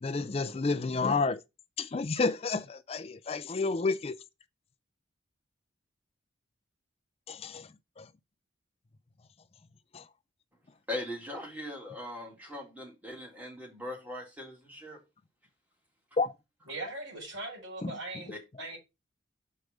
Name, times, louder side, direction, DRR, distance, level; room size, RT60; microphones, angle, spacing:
voice 1, 0.0-1.4 1.8-4.2 7.3-7.7 8.0-8.1 9.9-10.0 16.2-16.3 17.8-17.9, left 4 dB, 30° left, 0.4 m, -30 dB
voice 2, 10.9-15.0 18.3-18.4, left 1 dB, 10° right, 2.0 m, -40 dB
voice 3, 16.7-18.3 18.6-18.8, right 2 dB, 85° right, 4.7 m, -39 dB
6.5 x 4.7 x 5.0 m
head